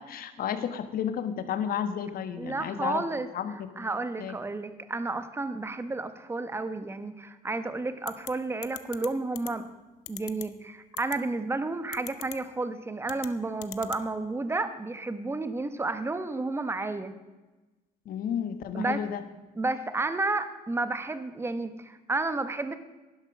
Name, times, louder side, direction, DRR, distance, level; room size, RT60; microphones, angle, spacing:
voice 1, 0.0-3.0 3.3-3.9 4.2-4.3 18.0-19.2, left 8 dB, 60° left, 10 dB, 1.3 m, -32 dB
voice 2, 2.4-3.3 3.8-9.7 10.1-17.1 18.7-19.0 19.6-22.8, right 3 dB, 15° right, 11 dB, 1.0 m, -31 dB
sound 1, 8.1-8.3 8.6-9.1 9.4-9.5 10.1-10.4 11.0-11.2 11.9-12.4 13.0-13.3 13.6-14.0, left 18 dB, 85° left, 0.8 m, -38 dB
11.5 x 11.0 x 6.1 m, 1.1 s
cardioid pair, 110°, 17 cm